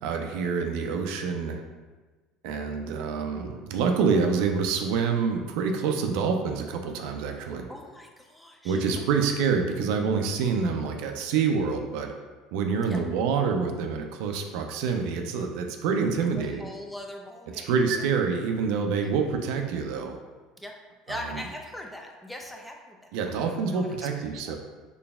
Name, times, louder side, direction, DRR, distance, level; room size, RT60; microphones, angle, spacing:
voice 1, 0.0-1.6 2.4-7.7 8.6-12.1 12.5-16.7 17.6-20.2 21.1-21.4 23.1-24.6, right 5 dB, 75° right, 4 dB, 0.4 m, -27 dB
voice 2, 7.7-9.1 12.8-13.0 16.4-18.1 19.0-19.1 20.6-20.7 21.1-24.5, left 1 dB, 5° left, 1 dB, 0.5 m, -41 dB
4.1 x 3.2 x 2.3 m, 1.3 s
supercardioid pair, 105°, 0 cm